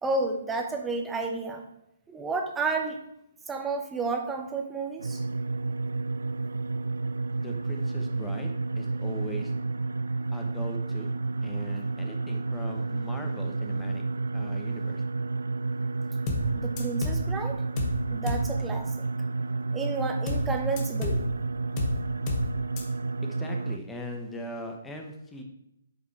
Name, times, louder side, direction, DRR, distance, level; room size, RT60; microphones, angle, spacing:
voice 1, 0.0-1.6 2.1-3.0 3.5-5.2 16.5-17.6 18.1-19.1 19.7-21.3, right 3 dB, 10° right, 4 dB, 1.0 m, -31 dB
sound 1, 5.0-23.8, right 3 dB, 80° right, 0.4 m, -31 dB
voice 2, 7.4-9.5 10.3-11.1 11.4-14.0 14.3-15.0 23.4-25.4, equal, 10° left, 3 dB, 1.2 m, -40 dB
sound 2, 16.3-16.5 16.8-17.3 17.8-18.0 18.3-18.5 20.3-20.5 20.8-21.3 21.8-22.0 22.3-22.5 22.8-22.9, left 2 dB, 30° left, 1.5 m, -30 dB
8.3 x 5.1 x 4.6 m, 0.81 s
figure-of-eight pair, 135°, 0 cm